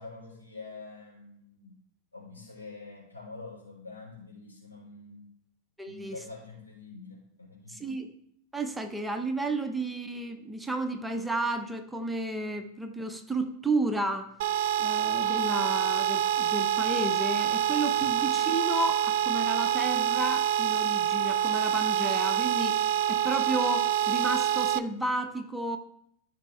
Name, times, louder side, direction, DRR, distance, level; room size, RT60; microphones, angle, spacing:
voice 1, 0.0-1.7 2.1-5.3 5.8-8.0 18.0-18.1, left 3 dB, 85° left, -4 dB, 4.1 m, -46 dB
voice 2, 5.8-6.2 7.7-8.1 8.5-14.3 14.8-25.8, right 2 dB, 5° right, 5 dB, 0.8 m, -32 dB
sound 1, 14.4-24.8, right 10 dB, 55° right, 0.4 m, -26 dB
14.0 x 5.2 x 3.4 m, 0.70 s
figure-of-eight pair, 90°, 0 cm